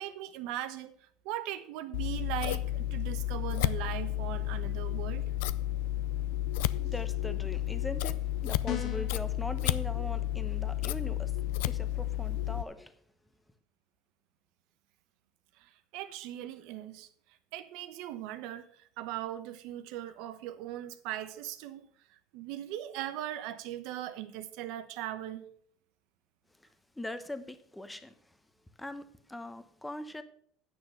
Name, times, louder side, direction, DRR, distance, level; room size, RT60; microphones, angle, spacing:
voice 1, 0.0-5.3 15.6-17.1 17.5-25.5, right 13 dB, 70° right, 1.0 m, -39 dB
Scissors, 1.9-12.6, left 14 dB, 85° left, 0.4 m, -32 dB
voice 2, 6.8-11.3 11.6-12.9 27.0-28.1 28.8-30.2, left 1 dB, 5° left, 1.0 m, -41 dB
sound 1, 8.6-9.2, left 11 dB, 55° left, 1.7 m, -36 dB
9.5 x 6.3 x 6.6 m
supercardioid pair, 120°, 0 cm